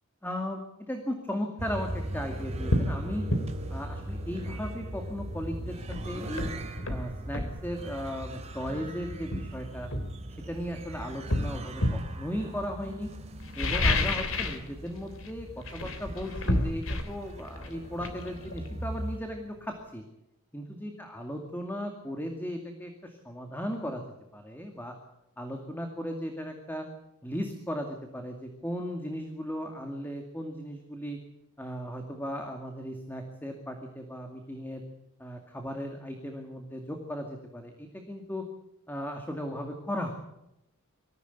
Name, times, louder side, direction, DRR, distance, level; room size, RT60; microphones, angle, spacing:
voice 1, 0.2-0.6 0.9-3.2 3.7-6.5 6.9-9.9 10.5-13.1 13.6-15.5 15.7-20.0 20.5-24.0 24.3-24.9 25.4-26.9 27.2-31.2 31.6-34.8 35.2-38.4 38.9-40.1, equal, 10° left, 3 dB, 2.3 m, -36 dB
sound 1, 1.6-19.2, right 1 dB, 30° right, 3.3 m, -39 dB
sound 2, 1.9-2.1 2.7-2.9 3.3-3.5 5.4-5.5 5.9-7.6 8.6-8.8 9.3-10.7 11.3-12.1 13.4-14.7 14.9-15.3 15.6-19.2 19.5-19.6, left 1 dB, 65° left, 3.3 m, -30 dB
24.5 x 15.5 x 8.2 m, 0.88 s
head